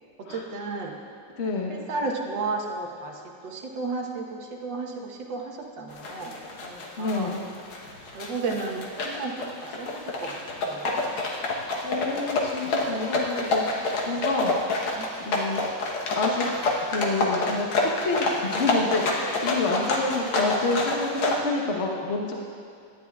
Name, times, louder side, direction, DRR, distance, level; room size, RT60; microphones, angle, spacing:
voice 1, 0.3-0.9 1.7-7.3 8.1-9.3 9.8-10.9 14.9-15.1, right 3 dB, 65° right, 0 dB, 1.8 m, -33 dB
voice 2, 1.4-1.8 7.0-7.4 11.5-14.6 15.2-15.8 16.2-16.5 16.9-22.3, left 3 dB, 45° left, 0 dB, 1.0 m, -28 dB
sound 1, 5.9-21.4, left 2 dB, 75° left, 1.9 m, -28 dB
17.5 x 12.0 x 2.4 m, 2.4 s
omnidirectional pair, 2.2 m